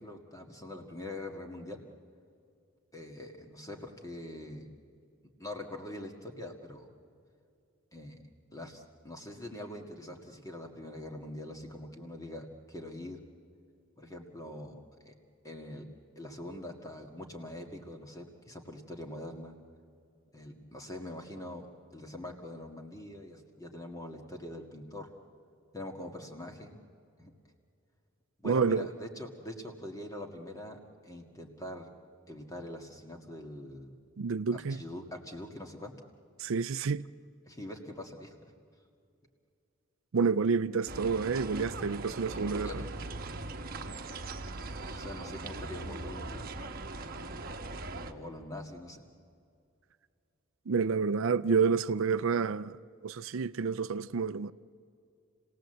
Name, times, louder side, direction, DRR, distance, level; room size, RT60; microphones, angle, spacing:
voice 1, 0.0-1.8 2.9-4.7 5.4-6.9 7.9-8.2 8.5-13.2 14.0-14.8 15.1-15.2 15.4-15.9 16.2-19.6 20.3-21.7 21.9-25.1 25.7-26.8 27.2-27.3 28.4-31.9 32.3-34.0 34.5-35.9 37.5-38.4 42.6-42.9 44.9-46.5 47.9-49.0, left 1 dB, 15° left, 1.9 m, -43 dB
voice 2, 28.4-28.9 34.2-34.8 36.4-37.1 40.1-42.8 50.7-52.8 53.0-54.5, right 5 dB, 70° right, 0.5 m, -29 dB
sound 1, 40.9-48.1, right 2 dB, 45° right, 1.2 m, -40 dB
29.0 x 18.0 x 7.9 m
head